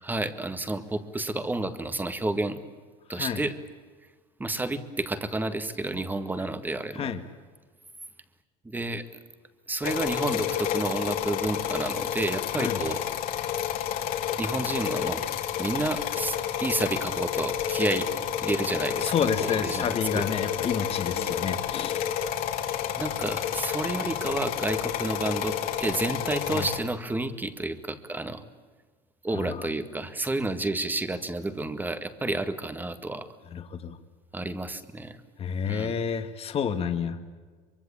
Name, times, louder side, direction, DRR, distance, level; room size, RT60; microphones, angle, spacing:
voice 1, 0.0-2.6 3.1-3.6 4.4-7.1 8.7-9.1 9.7-13.0 14.4-15.3 15.6-18.1 18.4-20.3 21.1-21.3 23.0-25.5 25.8-28.4 29.2-33.3 34.3-35.2 35.7-36.0, right 2 dB, 10° right, 10 dB, 1.8 m, -30 dB
sound 1, 9.8-26.8, left 10 dB, 55° left, 3.0 m, -30 dB
voice 2, 19.0-22.1 26.5-26.7 29.3-29.6 33.5-34.0 35.4-37.2, left 7 dB, 35° left, 8 dB, 2.0 m, -29 dB
24.5 x 24.0 x 8.6 m, 1.4 s
cardioid pair, 140°, 18 cm